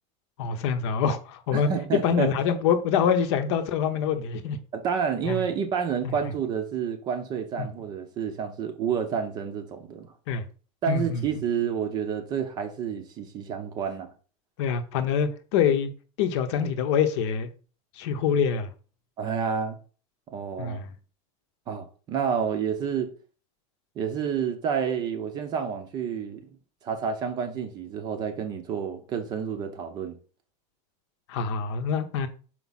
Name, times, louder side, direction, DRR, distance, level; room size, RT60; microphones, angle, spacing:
voice 1, 0.4-4.6 5.2-5.4 6.0-6.1 7.6-7.7 10.3-10.4 10.9-11.2 14.6-15.9 16.2-17.5 18.0-18.7 20.6-20.9 31.3-32.3, left 7 dB, 50° left, 0.9 m, -25 dB
voice 2, 1.5-2.3 4.7-10.1 10.8-14.1 19.2-19.8 20.3-20.8 21.7-23.1 24.0-26.5 26.8-30.2, right 7 dB, 25° right, 0.7 m, -29 dB
5.9 x 4.7 x 4.1 m
supercardioid pair, 180°, 18 cm